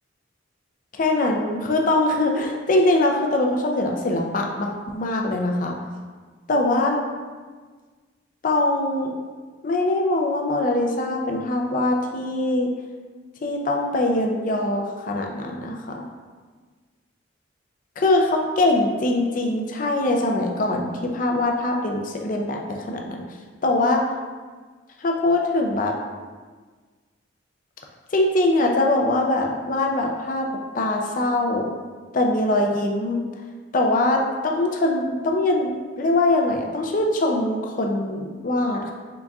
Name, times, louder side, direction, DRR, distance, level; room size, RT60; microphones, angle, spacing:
voice 1, 0.9-5.8 6.5-7.0 8.4-9.1 9.6-12.8 13.4-16.1 18.0-23.2 23.6-24.1 25.0-25.9 28.1-30.5 30.7-31.7 32.1-33.3 33.7-38.9, left 2 dB, 40° left, 1 dB, 0.4 m, -22 dB
3.9 x 3.4 x 2.3 m, 1.4 s
head